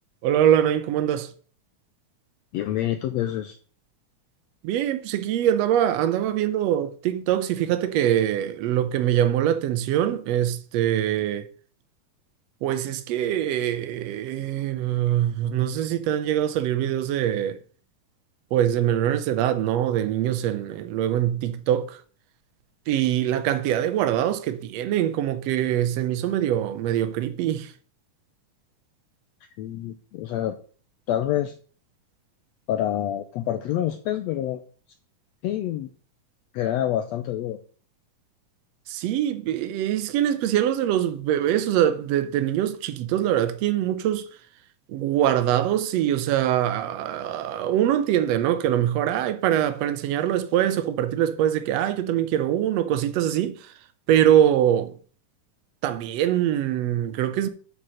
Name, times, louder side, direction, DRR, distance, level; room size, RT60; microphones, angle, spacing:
voice 1, 0.2-1.3 4.6-11.5 12.6-17.6 18.5-22.0 22.9-27.7 38.9-44.3 44.9-53.6 54.1-54.9 55.8-57.5, right 11 dB, 70° right, 1.7 m, -23 dB
voice 2, 2.5-3.6 29.6-30.6 31.1-31.6 32.7-34.6 35.4-35.9 36.5-37.6, left 12 dB, 80° left, 1.5 m, -27 dB
9.0 x 4.8 x 6.3 m
omnidirectional pair, 3.7 m